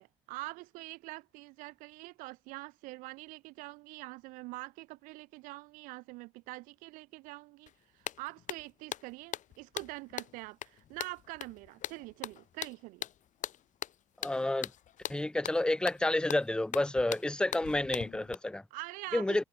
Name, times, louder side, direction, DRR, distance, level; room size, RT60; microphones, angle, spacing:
voice 1, 0.0-13.1 18.7-19.4, right 23 dB, 90° right, 0.7 m, -45 dB
sound 1, 7.7-7.8 8.0-18.3, left 11 dB, 70° left, 2.7 m, -41 dB
voice 2, 14.2-14.7 15.1-18.6 19.1-19.4, left 2 dB, 5° left, 0.6 m, -30 dB
supercardioid pair, 60°, 13 cm